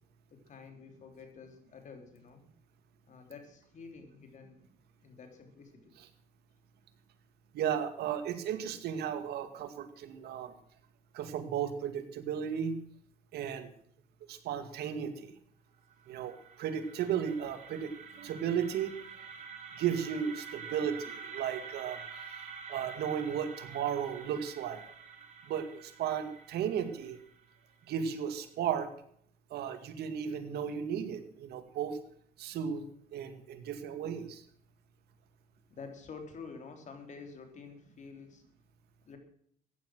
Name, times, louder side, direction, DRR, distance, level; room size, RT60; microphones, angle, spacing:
voice 1, 0.3-2.4 3.0-4.6 5.0-5.9 33.5-33.6 35.7-38.4 39.1-39.2, left 5 dB, 45° left, 5 dB, 3.5 m, -49 dB
voice 2, 7.5-10.5 11.1-12.8 13.3-13.7 14.3-15.3 16.1-16.3 16.6-19.0 19.8-22.0 22.7-24.8 25.5-27.2 27.9-28.9 29.5-32.0 32.4-32.8 33.1-34.4, right 8 dB, 75° right, 8 dB, 2.1 m, -34 dB
sound 1, 15.9-27.9, right 6 dB, 45° right, 2.9 m, -48 dB
14.5 x 10.0 x 6.1 m, 0.64 s
cardioid pair, 110°, 17 cm